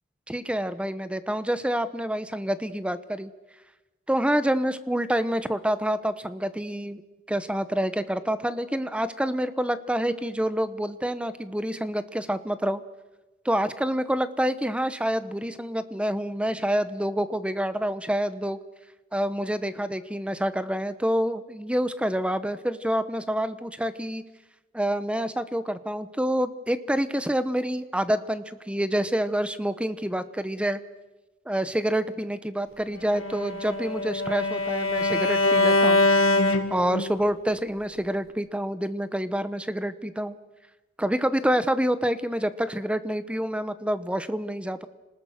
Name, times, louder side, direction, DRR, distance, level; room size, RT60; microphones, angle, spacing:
voice 1, 0.3-3.3 4.1-7.0 7.3-12.8 13.4-18.6 19.1-24.2 24.7-30.8 31.5-36.1 36.7-40.3 41.0-44.9, equal, 5° right, 12 dB, 0.9 m, -27 dB
Bowed string instrument, 33.1-37.3, left 2 dB, 80° left, 2.3 m, -23 dB
30.0 x 20.0 x 6.5 m, 1.1 s
head